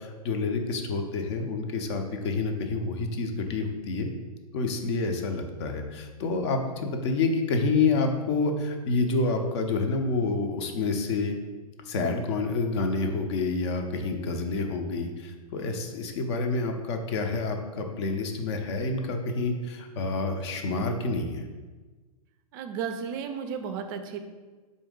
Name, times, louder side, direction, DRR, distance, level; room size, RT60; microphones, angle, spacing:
voice 1, 0.0-4.1 4.5-11.4 11.9-21.5, left 3 dB, 45° left, 5 dB, 0.5 m, -28 dB
voice 2, 22.5-24.2, right 7 dB, 35° right, 7 dB, 0.4 m, -33 dB
4.4 x 2.6 x 3.6 m, 1.3 s
hypercardioid pair, 115°, 20 cm